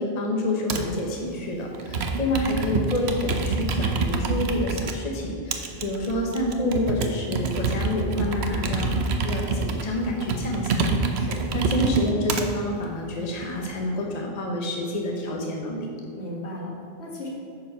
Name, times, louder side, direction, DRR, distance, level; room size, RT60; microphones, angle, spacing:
voice 1, 0.0-15.9, left 1 dB, 40° left, -1 dB, 1.1 m, -28 dB
Computer keyboard, 0.7-1.0 1.7-4.9 5.5-12.5 13.1-13.7, right 4 dB, 75° right, 1.0 m, -26 dB
voice 2, 8.2-8.8 11.1-11.4 16.1-17.3, left 1 dB, 80° left, -3 dB, 2.0 m, -37 dB
9.5 x 4.7 x 5.6 m, 2.6 s
omnidirectional pair, 1.1 m